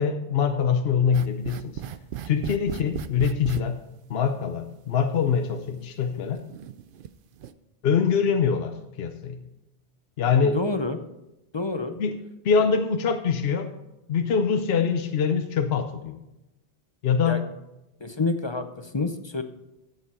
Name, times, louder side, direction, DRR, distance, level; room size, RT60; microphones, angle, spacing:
voice 1, 0.0-1.8 2.2-3.8 4.1-6.4 7.8-9.5 10.2-10.6 12.0-12.2 12.4-13.7 14.1-16.2 17.0-17.4, left 6 dB, 70° left, 7 dB, 1.0 m, -24 dB
sound 1, 1.1-3.6 4.7-4.8 5.5-5.6 6.4-7.1 7.3-7.5, right 9 dB, 60° right, 0.7 m, -35 dB
voice 2, 10.4-11.0 11.5-12.0 17.3-17.4 18.0-19.4, left 3 dB, 30° left, 8 dB, 0.6 m, -28 dB
13.5 x 8.0 x 4.2 m, 0.94 s
omnidirectional pair, 1.1 m